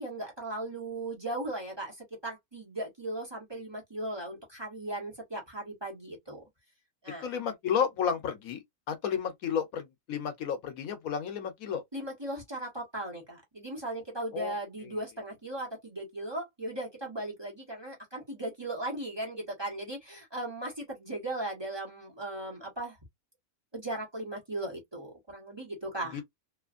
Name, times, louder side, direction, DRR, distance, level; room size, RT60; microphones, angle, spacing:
voice 1, 0.0-6.4 7.0-7.3 11.9-23.0 23.7-26.2, right 1 dB, 20° right, 1.3 m, -37 dB
voice 2, 7.2-11.8 14.3-14.5 26.1-26.2, left 7 dB, 80° left, 1.2 m, -32 dB
3.1 x 2.5 x 2.4 m
omnidirectional pair, 1.5 m